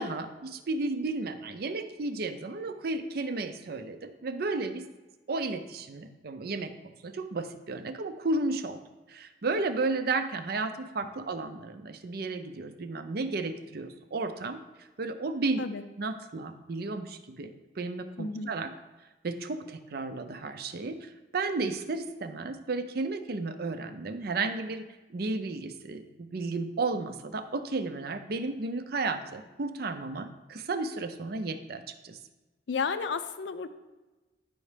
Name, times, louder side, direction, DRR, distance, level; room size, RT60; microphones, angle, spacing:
voice 1, 0.0-4.9 5.3-8.8 9.1-15.6 16.0-18.7 19.2-32.2, right 3 dB, 60° right, 9 dB, 0.5 m, -33 dB
voice 2, 18.2-18.5 32.7-33.7, left 5 dB, 85° left, 11 dB, 0.5 m, -32 dB
9.8 x 4.2 x 3.3 m, 1.1 s
head